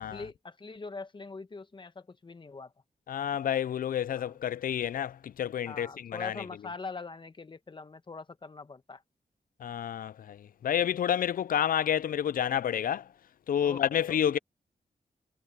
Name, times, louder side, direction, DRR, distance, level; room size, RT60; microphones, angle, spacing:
voice 1, 0.0-2.7 4.1-4.4 5.7-9.0 13.6-14.2, left 4 dB, 30° left, 1.1 m, -43 dB
voice 2, 3.1-6.3 9.6-13.0 13.5-14.4, left 9 dB, 65° left, 0.4 m, -29 dB
wide cardioid pair, 130°, 16 cm